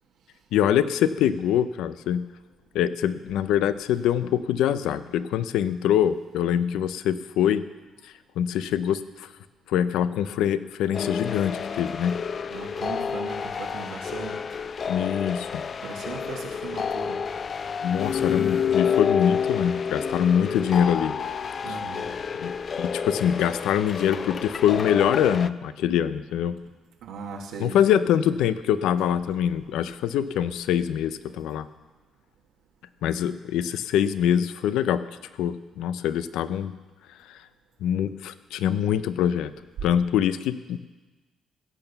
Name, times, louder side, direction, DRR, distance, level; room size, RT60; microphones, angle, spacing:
voice 1, 0.5-2.3 2.7-7.6 8.4-9.3 9.7-12.2 14.9-15.5 17.8-21.1 22.4-26.6 27.6-31.7 33.0-35.0 35.4-36.7 37.3-37.4 37.8-39.5 39.8-40.8, left 9 dB, 90° left, 13 dB, 0.6 m, -24 dB
sound 1, 10.9-25.5, left 6 dB, 40° left, 0.4 m, -29 dB
voice 2, 12.5-14.4 15.8-17.2 21.6-22.1 23.9-24.1 27.0-27.8, right 5 dB, 90° right, -1 dB, 1.9 m, -38 dB
16.5 x 9.0 x 6.9 m, 1.2 s
cardioid pair, 115°, 0 cm